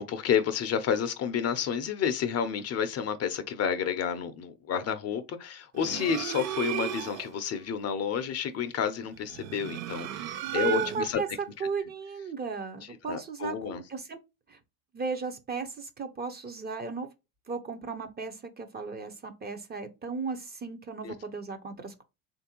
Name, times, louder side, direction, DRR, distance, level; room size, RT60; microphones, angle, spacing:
voice 1, 0.0-11.2 13.1-13.8 21.0-21.1, left 7 dB, 35° left, 0.6 m, -30 dB
sound 1, 5.8-7.4 9.2-11.3, right 12 dB, 75° right, 0.5 m, -34 dB
voice 2, 10.5-11.3 11.6-14.2 14.5-14.6 14.9-17.1 17.5-22.0, right 5 dB, 25° right, 0.6 m, -35 dB
3.3 x 2.6 x 2.9 m
hypercardioid pair, 85°, 42 cm